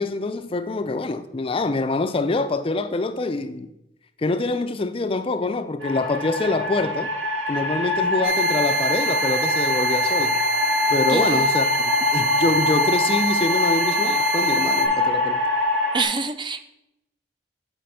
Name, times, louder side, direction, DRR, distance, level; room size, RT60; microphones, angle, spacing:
voice 1, 0.0-3.7 4.2-7.1 7.5-10.4 10.9-15.4, left 3 dB, 30° left, 0.4 m, -25 dB
sound 1, 5.8-16.0, left 2 dB, 75° right, 2.1 m, -23 dB
sound 2, 8.2-14.8, right 3 dB, 55° right, 2.5 m, -26 dB
voice 2, 11.1-11.5 15.9-16.7, right 4 dB, 25° right, 0.5 m, -26 dB
8.4 x 5.1 x 5.7 m
head